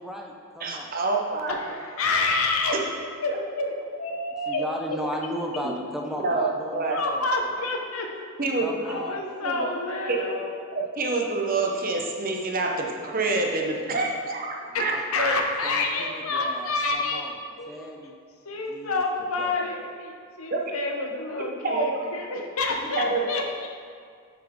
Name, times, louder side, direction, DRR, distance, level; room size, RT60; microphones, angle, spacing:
voice 1, 0.0-0.9 4.5-7.5 8.6-9.2 14.7-17.3 17.7-18.1 18.7-18.9 19.4-19.5, equal, ahead, 0 dB, 0.6 m, -36 dB
voice 2, 0.6-1.5 2.7-2.8 5.6-5.7 6.2-7.0 8.4-9.0 9.4-9.7 10.1-10.3 10.7-15.3 20.5-20.6 21.6-22.0 23.0-23.2, right 3 dB, 40° right, 0 dB, 0.8 m, -27 dB
voice 3, 1.5-2.8 3.2-4.7 6.9-8.1 8.8-10.5 14.7-17.3 17.6-18.0 18.4-23.7, left 3 dB, 85° left, 2 dB, 0.9 m, -28 dB
7.2 x 7.0 x 3.6 m, 2.1 s
head